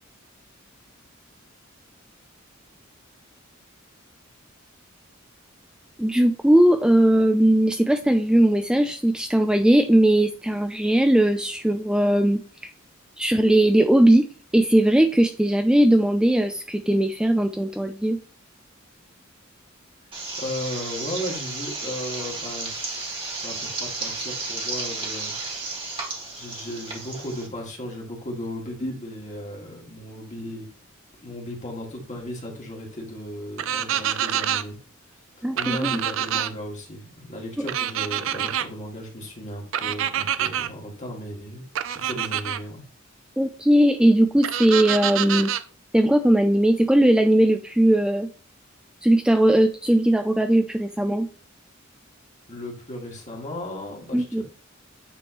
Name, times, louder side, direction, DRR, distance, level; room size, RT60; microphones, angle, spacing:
voice 1, 6.0-12.7 13.2-14.3 14.5-18.2 35.4-36.0 43.4-45.5 45.9-48.3 49.0-51.3 54.1-54.4, right 1 dB, 5° right, 6 dB, 0.3 m, -19 dB
sound 1, 20.1-27.5, right 3 dB, 25° right, 1.7 m, -33 dB
voice 2, 20.4-25.3 26.3-30.7 31.2-34.8 35.5-42.8 52.5-54.4, left 1 dB, 35° left, -1 dB, 1.9 m, -35 dB
sound 2, 33.6-34.6 35.6-36.5 37.7-38.7 39.7-40.7 41.7-42.6 44.4-45.6, right 10 dB, 70° right, 0.4 m, -26 dB
9.0 x 3.5 x 3.0 m, 0.40 s
head